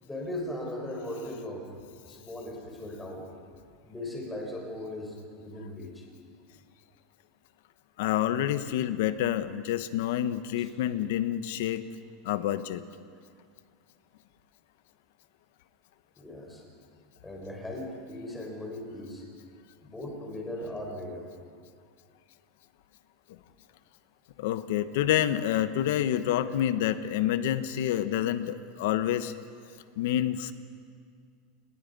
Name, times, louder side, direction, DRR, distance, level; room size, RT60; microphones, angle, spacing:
voice 1, 0.0-1.7 2.1-3.3 3.8-6.0 10.6-10.7 16.2-16.6 17.2-19.2 19.8-21.3, left 1 dB, 5° left, 0 dB, 4.1 m, -38 dB
voice 2, 8.0-11.8 12.2-12.8 24.4-29.3 30.0-30.5, left 11 dB, 65° left, 12 dB, 1.0 m, -28 dB
29.5 x 19.5 x 5.4 m, 2.2 s
supercardioid pair, 170°, 0 cm